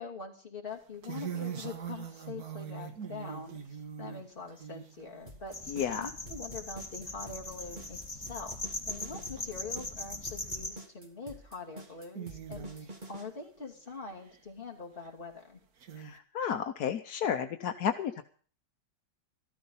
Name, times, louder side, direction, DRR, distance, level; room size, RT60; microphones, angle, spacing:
voice 1, 0.0-8.6 8.8-15.6, left 4 dB, 35° left, 0 dB, 2.8 m, -44 dB
sound 1, 0.7-5.8 6.2-6.7 7.1-7.2 7.4-7.5 8.0-8.1 9.4-9.5 10.4-10.7 11.3-11.4 11.7-13.3 13.9-14.4 15.0-15.1 15.8-16.2, right 8 dB, 70° right, 1.9 m, -42 dB
sound 2, 5.3-13.3, right 1 dB, 30° right, 2.3 m, -47 dB
sound 3, 5.5-10.7, left 2 dB, 20° left, 2.4 m, -40 dB
voice 2, 5.7-6.1 16.0-18.2, left 8 dB, 80° left, 7 dB, 1.4 m, -32 dB
14.0 x 13.5 x 5.5 m, 0.43 s
omnidirectional pair, 1.6 m